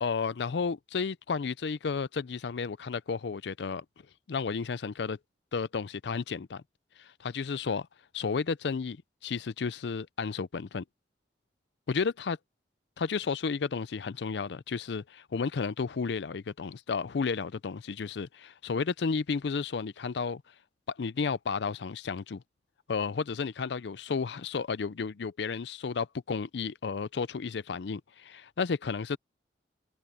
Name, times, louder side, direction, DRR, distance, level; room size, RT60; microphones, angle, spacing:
voice 1, 0.0-3.8 4.3-5.2 5.5-6.6 7.0-7.9 8.1-10.8 11.9-12.4 13.0-20.4 21.0-22.4 22.9-29.2, left 5 dB, 70° left, 0.5 m, -32 dB
head